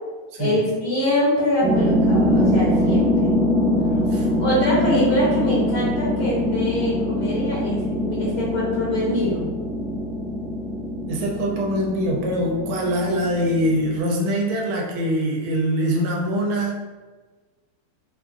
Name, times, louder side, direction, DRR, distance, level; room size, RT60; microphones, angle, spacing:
voice 1, 0.4-3.3 4.1-9.5, left 1 dB, 75° left, -6 dB, 1.6 m, -24 dB
sound 1, 1.6-14.0, left 1 dB, 60° right, 0.6 m, -23 dB
voice 2, 11.1-16.8, equal, 85° right, -1 dB, 1.4 m, -23 dB
4.4 x 2.4 x 2.4 m, 1.3 s
omnidirectional pair, 2.3 m